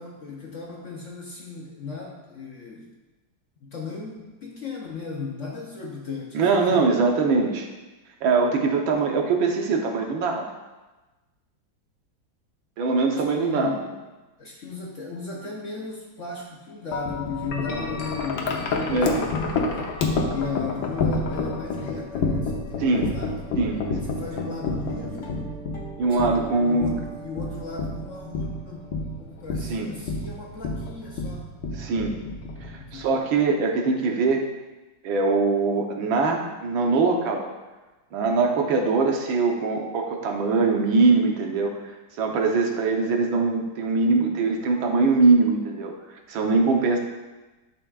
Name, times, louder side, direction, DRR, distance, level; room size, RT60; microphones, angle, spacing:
voice 1, 0.0-2.9 3.6-7.0 13.1-13.9 14.4-23.4 24.0-25.4 26.6-28.9 29.2-31.5 32.8-33.3, left 5 dB, 55° left, -1 dB, 0.9 m, -36 dB
voice 2, 6.3-7.7 8.2-10.5 12.8-13.7 18.9-19.2 22.8-23.1 23.6-24.0 26.0-26.9 29.7-29.9 31.7-32.1 32.6-34.5 35.0-37.5 38.1-41.7 42.2-45.9 46.3-47.0, right 4 dB, 85° right, 2 dB, 1.7 m, -22 dB
Wind chime, 16.9-33.1, left 3 dB, 80° left, 1.6 m, -29 dB
sound 1, 24.9-29.4, right 2 dB, 20° left, 1.0 m, -42 dB
11.0 x 6.1 x 2.4 m, 1.2 s
omnidirectional pair, 2.1 m